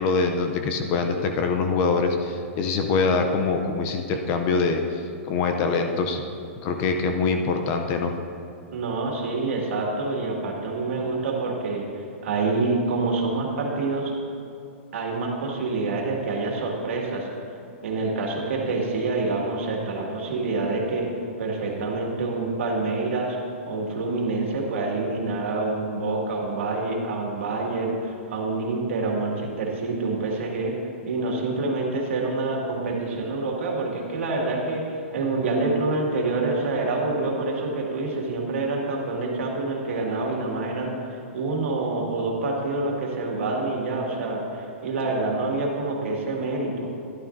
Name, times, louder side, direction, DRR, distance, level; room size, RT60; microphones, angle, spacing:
voice 1, 0.0-5.0 5.3-6.2 6.6-8.1, left 4 dB, 25° left, 5 dB, 0.5 m, -24 dB
voice 2, 8.7-11.9 12.2-14.1 14.9-17.3 17.8-21.1 21.4-23.4 23.7-30.7 31.0-34.8 35.1-46.9, right 3 dB, 70° right, -1 dB, 2.0 m, -27 dB
12.5 x 11.0 x 2.6 m, 2.5 s
hypercardioid pair, 175°, 7 cm